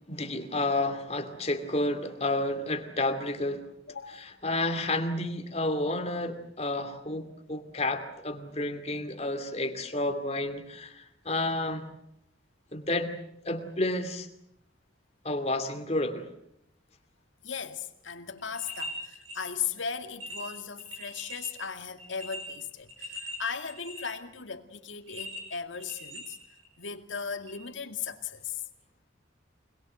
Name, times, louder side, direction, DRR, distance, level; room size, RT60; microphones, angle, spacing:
voice 1, 0.1-3.7 4.2-11.8 12.7-13.2 13.4-14.3 15.2-16.3, left 2 dB, 30° left, 2.4 m, -30 dB
voice 2, 3.9-4.2 17.4-26.4 26.8-28.6, left 6 dB, 80° left, 2.2 m, -37 dB
sound 1, 18.4-19.4 19.8-19.9 20.2-21.5 22.0-24.2 25.1-26.8 27.5-27.6, left 1 dB, 85° right, 6.2 m, -41 dB
26.5 x 21.0 x 8.0 m
head